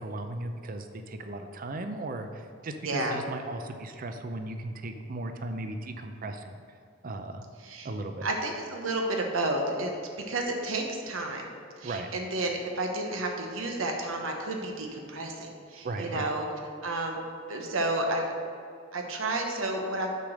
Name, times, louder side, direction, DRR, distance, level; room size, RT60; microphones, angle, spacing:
voice 1, 0.0-6.6 7.0-7.4 7.8-8.3 11.8-12.1 15.8-16.3, right 2 dB, 45° right, 7 dB, 0.5 m, -36 dB
voice 2, 2.8-3.2 7.6-7.9 8.2-9.9 10.3-11.5 11.8-16.5 16.8-17.2 17.5-18.2 18.9-20.1, right 2 dB, 85° right, 2 dB, 1.0 m, -31 dB
6.8 x 5.0 x 6.2 m, 2.5 s
head